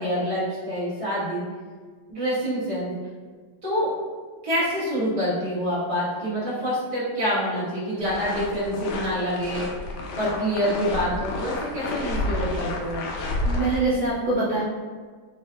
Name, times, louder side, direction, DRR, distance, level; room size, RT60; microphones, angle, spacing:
voice 1, 0.0-1.4 2.1-2.9 3.6-3.9 4.4-9.7 10.2-13.1, equal, 20° right, -10 dB, 0.9 m, -26 dB
sound 1, 8.0-13.8, left 2 dB, 90° left, 1.4 m, -30 dB
voice 2, 13.4-14.6, right 2 dB, 70° right, -7 dB, 1.1 m, -24 dB
3.7 x 2.5 x 2.3 m, 1.5 s
omnidirectional pair, 2.1 m